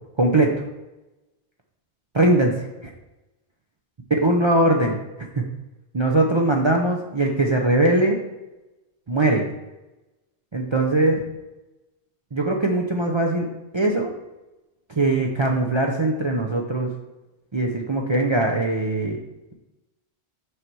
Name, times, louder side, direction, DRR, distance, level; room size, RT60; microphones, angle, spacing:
voice 1, 0.2-0.5 2.1-2.9 4.2-5.0 5.3-5.4 5.9-8.2 9.1-9.5 10.5-11.2 12.3-13.5 13.7-14.1 15.0-16.9 17.5-19.2, right 2 dB, 30° right, 0 dB, 0.6 m, -21 dB
6.5 x 5.8 x 4.6 m, 1.0 s
omnidirectional pair, 1.1 m